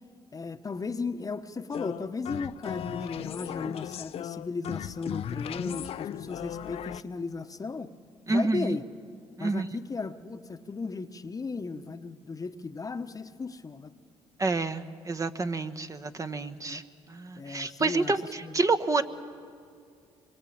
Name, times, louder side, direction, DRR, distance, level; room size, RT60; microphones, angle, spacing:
voice 1, 0.3-7.9 8.3-8.8 9.4-13.9 16.7-16.8 17.4-18.1 18.4-18.5, left 4 dB, 30° left, 9 dB, 1.1 m, -35 dB
sound 1, 1.7-7.0, left 10 dB, 60° left, 0.6 m, -37 dB
voice 2, 8.3-8.8 9.4-9.7 14.4-16.8 17.1-19.0, right 3 dB, 30° right, 8 dB, 1.2 m, -28 dB
24.5 x 22.5 x 8.7 m, 2.3 s
supercardioid pair, 70°, 12 cm